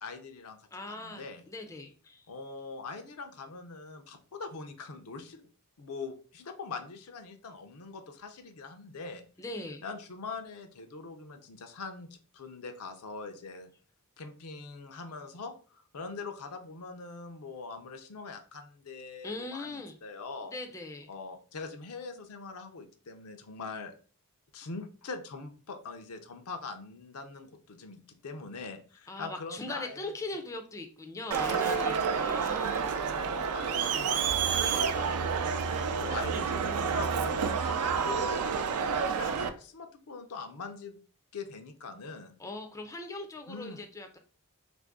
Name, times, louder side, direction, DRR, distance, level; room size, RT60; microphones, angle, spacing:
voice 1, 0.0-1.4 2.3-5.4 5.8-9.2 9.8-12.1 12.3-13.7 14.2-20.5 21.1-23.9 24.5-30.1 31.5-34.4 34.7-41.0 41.3-42.3 43.5-43.8, left 4 dB, 75° left, 6 dB, 0.5 m, -43 dB
voice 2, 0.7-2.3 9.4-9.8 19.2-20.0 20.4-21.1 29.1-32.9 42.4-44.2, left 2 dB, 15° left, 5 dB, 0.4 m, -40 dB
Crowd, 31.3-39.5, right 6 dB, 80° right, 0.4 m, -29 dB
3.2 x 2.5 x 3.5 m, 0.40 s
head